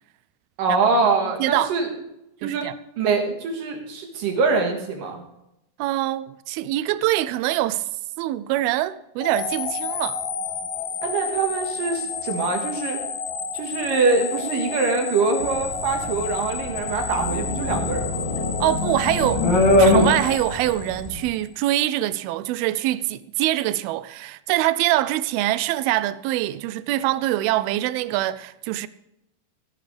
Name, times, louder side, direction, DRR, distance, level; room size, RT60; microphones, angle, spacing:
voice 1, 0.6-1.9 2.4-2.7 3.0-5.2 11.0-13.0 13.5-18.1, right 4 dB, 70° right, 3.0 m, -24 dB
voice 2, 1.4-1.7 2.4-2.8 5.8-7.9 8.2-10.2 18.6-19.5 19.7-28.9, right 15 dB, 85° right, 2.4 m, -24 dB
sound 1, 9.2-21.4, left 5 dB, 80° left, 3.1 m, -31 dB
sound 2, 15.4-21.3, left 2 dB, 35° left, 2.2 m, -22 dB
15.5 x 11.0 x 3.4 m
omnidirectional pair, 4.3 m